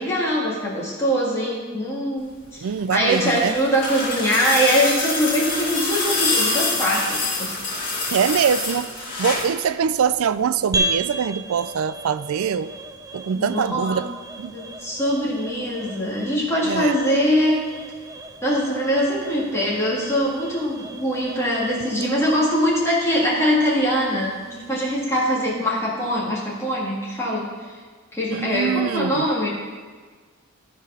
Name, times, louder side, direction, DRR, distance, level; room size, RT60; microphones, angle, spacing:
voice 1, 0.0-7.6 13.3-14.0 14.5-17.6 18.4-27.5 28.1-29.5, equal, 10° left, -5 dB, 2.0 m, -22 dB
voice 2, 2.6-3.5 8.1-8.9 9.2-12.7 13.1-14.1 14.4-14.6 16.6-17.0 28.3-29.3, right 7 dB, 75° right, 14 dB, 0.4 m, -23 dB
sound 1, 2.8-9.6 10.9-11.0, left 2 dB, 60° left, 2.8 m, -26 dB
sound 2, 10.7-25.3, right 1 dB, 15° right, 0.4 m, -35 dB
12.5 x 4.8 x 5.6 m, 1.5 s
head